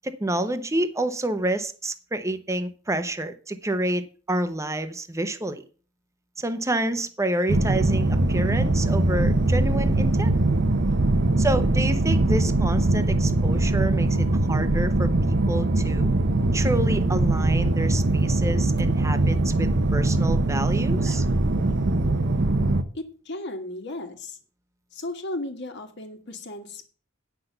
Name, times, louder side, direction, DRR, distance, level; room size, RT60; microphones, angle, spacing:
voice 1, 0.0-5.6 6.4-10.4 11.4-16.1 16.5-21.2, right 1 dB, 15° right, 10 dB, 0.8 m, -28 dB
sound 1, 7.5-22.8, right 2 dB, 60° right, 0.8 m, -22 dB
voice 2, 22.9-24.4 24.9-26.9, left 2 dB, 60° left, 5 dB, 1.6 m, -35 dB
9.3 x 6.0 x 6.6 m, 0.39 s
head